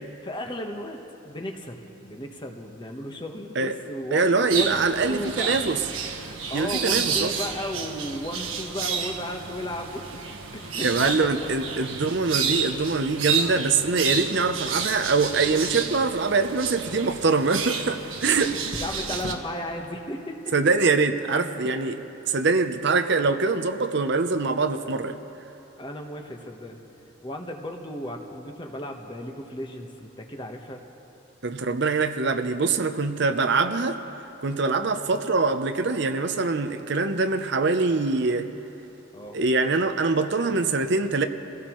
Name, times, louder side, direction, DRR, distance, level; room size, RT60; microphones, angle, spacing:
voice 1, 0.2-1.0 1.2-4.8 5.1-5.6 6.5-10.2 10.5-11.9 18.2-18.5 18.7-20.5 21.6-21.7 25.8-26.8 27.2-30.8 33.2-33.3 39.1-39.4, left 1 dB, 20° left, 3 dB, 1.1 m, -35 dB
voice 2, 4.1-5.8 6.5-7.3 10.8-18.5 20.5-22.0 22.2-25.2 31.4-34.0 34.4-38.5 39.3-41.2, right 4 dB, 55° right, 7 dB, 0.7 m, -23 dB
sound 1, 4.5-19.3, right 6 dB, 80° right, 1.4 m, -30 dB
27.5 x 17.0 x 3.1 m, 2.9 s
head